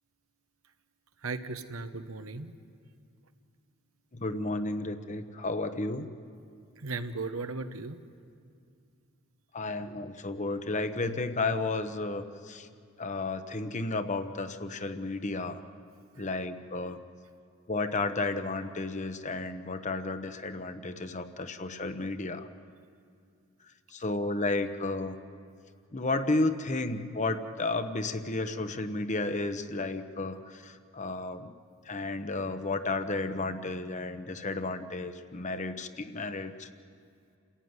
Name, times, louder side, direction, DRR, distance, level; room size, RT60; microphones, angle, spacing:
voice 1, 1.2-2.5 6.8-8.0, right 3 dB, 75° right, 9 dB, 1.2 m, -36 dB
voice 2, 4.1-6.1 9.5-12.7 13.0-15.6 16.2-17.0 17.7-22.5 23.9-25.2 25.9-31.5 31.9-36.7, left 2 dB, 35° left, 9 dB, 1.1 m, -32 dB
28.5 x 16.0 x 9.7 m, 2.3 s
head